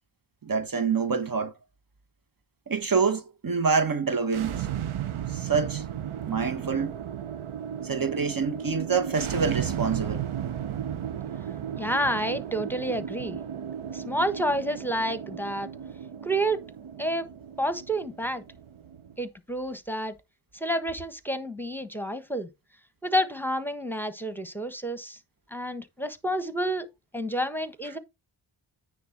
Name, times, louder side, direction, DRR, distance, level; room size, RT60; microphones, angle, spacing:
voice 1, 0.4-1.5 2.7-4.7 5.3-5.8 6.2-7.0 7.8-10.2, right 5 dB, 45° right, 1.1 m, -26 dB
sound 1, 4.2-19.2, right 9 dB, 80° right, 0.9 m, -35 dB
voice 2, 11.8-13.4 13.9-15.7 16.2-16.6 17.0-17.3 17.6-18.4 19.2-20.1 20.5-22.5 23.0-25.2 25.5-28.0, equal, 5° left, 1.3 m, -29 dB
9.3 x 3.5 x 5.9 m
cardioid pair, 55°, 49 cm